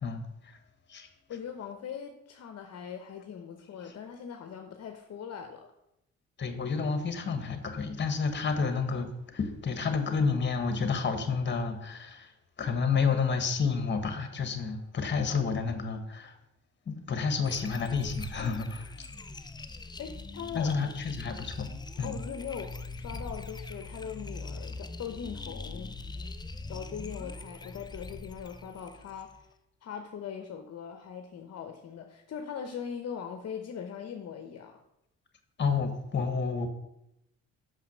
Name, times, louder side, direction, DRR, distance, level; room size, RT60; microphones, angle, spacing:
voice 1, 1.3-5.6 20.0-20.7 22.0-26.0 26.7-29.5 29.8-34.8, left 7 dB, 55° left, 5 dB, 0.9 m, -40 dB
voice 2, 6.4-9.1 9.3-12.3 12.6-16.3 16.9-18.9 20.5-21.7 22.0-22.1 35.6-36.7, left 5 dB, 35° left, 8 dB, 1.4 m, -30 dB
sound 1, 17.4-29.4, left 3 dB, 15° left, 0.5 m, -42 dB
6.2 x 5.7 x 6.2 m, 0.84 s
cardioid pair, 90°, 30 cm